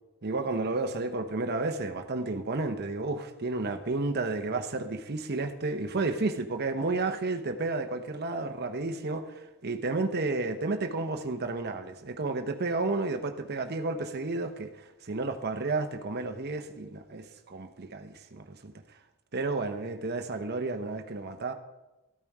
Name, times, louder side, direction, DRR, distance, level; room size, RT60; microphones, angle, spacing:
voice 1, 0.2-18.7 19.3-21.5, right 3 dB, 45° right, 6 dB, 0.9 m, -32 dB
13.5 x 9.1 x 4.8 m, 1.0 s
head